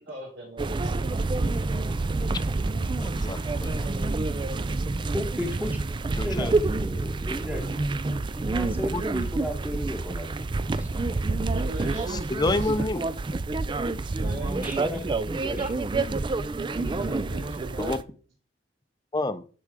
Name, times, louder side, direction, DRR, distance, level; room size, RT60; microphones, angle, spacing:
voice 1, 0.1-1.0 11.5-13.2 14.2-15.1 16.9-18.0, right 1 dB, 70° right, -5 dB, 4.1 m, -41 dB
sound 1, 0.6-18.0, right 3 dB, 25° right, 0.4 m, -28 dB
voice 2, 3.0-3.9 6.2-6.5 8.9-9.0 12.1-13.0 13.3-13.4 17.8-18.0 19.1-19.4, left 2 dB, 25° left, 12 dB, 0.6 m, -29 dB
voice 3, 5.1-5.8 6.2-7.8 8.3-10.5 10.7-10.9 14.4-15.0 15.3-16.0, equal, 10° right, 3 dB, 1.2 m, -34 dB
13.0 x 4.8 x 3.6 m, 0.40 s
head